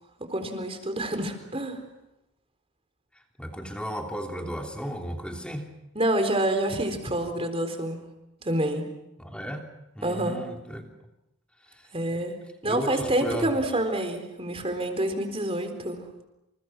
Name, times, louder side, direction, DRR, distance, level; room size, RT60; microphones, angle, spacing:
voice 1, 0.2-1.8 6.0-8.0 8.4-8.8 10.0-10.4 11.9-12.4 12.6-16.0, right 1 dB, 25° right, 7 dB, 4.0 m, -27 dB
voice 2, 3.4-5.7 9.2-9.6 9.9-10.8 11.6-12.2 12.6-13.6, equal, 5° left, 2 dB, 3.2 m, -35 dB
29.0 x 28.5 x 6.1 m, 0.90 s
head